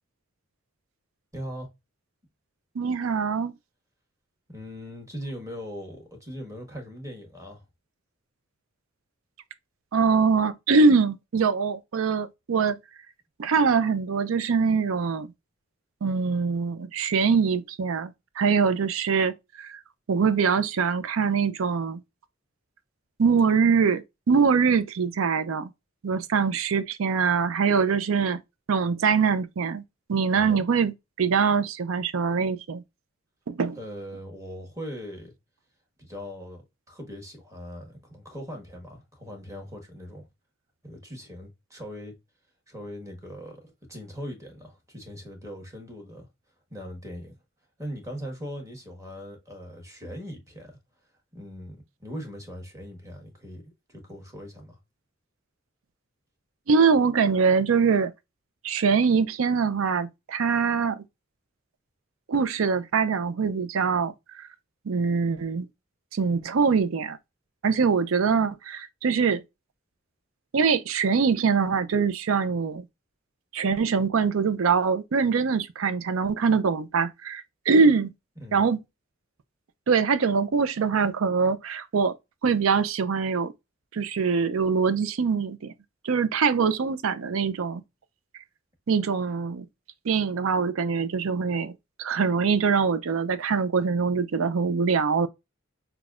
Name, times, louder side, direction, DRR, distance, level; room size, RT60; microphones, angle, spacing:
voice 1, 1.3-1.7 4.5-7.6 30.3-30.7 33.8-35.3 36.0-40.3 40.8-42.2 42.7-46.3 46.7-47.4 47.8-50.8 51.3-54.8 78.4-78.7, equal, 15° right, 1.2 m, -40 dB
voice 2, 2.8-3.5 9.9-12.8 13.4-15.3 16.0-19.8 20.1-22.0 23.2-25.7 26.0-28.4 28.7-29.8 30.1-32.8 33.5-33.8 56.7-58.1 58.6-61.0 62.3-64.5 64.9-65.7 66.1-67.2 67.6-69.4 70.5-72.8 73.5-78.1 78.5-78.8 79.9-82.1 82.4-83.5 83.9-85.7 86.0-87.8 88.9-89.7 90.1-91.7 92.0-95.3, right 5 dB, 85° right, 0.5 m, -23 dB
5.9 x 2.3 x 2.4 m
head